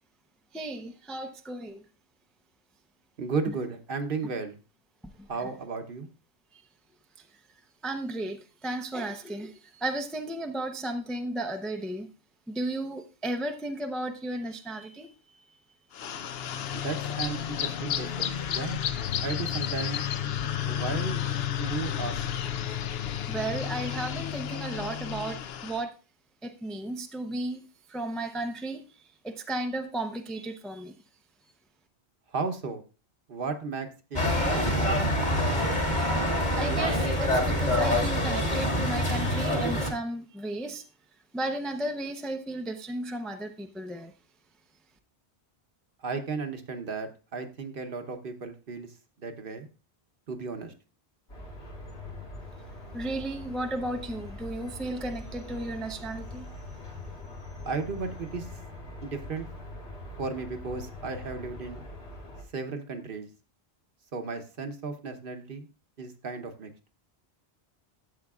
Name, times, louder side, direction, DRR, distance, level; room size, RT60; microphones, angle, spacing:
voice 1, 0.5-1.8 5.4-5.5 7.8-8.4 8.6-9.5 9.8-12.1 12.5-15.1 23.3-25.9 26.4-27.6 27.9-28.8 29.2-30.9 36.6-40.8 41.3-44.1 52.9-56.5, right 1 dB, ahead, 0.4 m, -34 dB
voice 2, 3.2-4.6 5.3-6.1 16.7-18.8 19.2-20.0 20.7-21.2 21.6-22.2 32.3-32.8 33.3-34.2 34.5-35.1 46.0-48.9 49.2-49.7 50.3-50.7 57.6-58.5 59.0-59.5 60.2-61.8 62.5-63.3 64.1-65.7 66.0-66.7, right 4 dB, 55° right, 1.1 m, -34 dB
sound 1, 15.9-25.8, left 10 dB, 70° left, 0.8 m, -32 dB
sound 2, 34.1-39.9, left 1 dB, 40° left, 2.0 m, -26 dB
sound 3, 51.3-62.4, left 1 dB, 85° left, 3.1 m, -42 dB
12.5 x 7.7 x 2.4 m
omnidirectional pair, 1.1 m